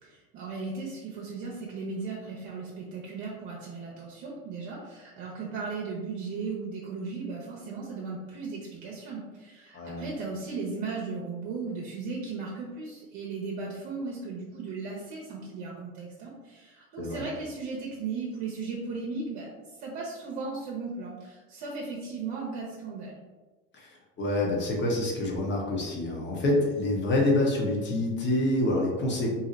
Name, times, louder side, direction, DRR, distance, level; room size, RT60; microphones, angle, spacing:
voice 1, 0.0-23.2, right 4 dB, 55° right, -2 dB, 0.7 m, -36 dB
voice 2, 9.7-10.0 17.0-17.2 23.7-29.3, left 1 dB, 30° left, -1 dB, 0.9 m, -27 dB
2.7 x 2.0 x 3.9 m, 1.2 s
supercardioid pair, 105°, 34 cm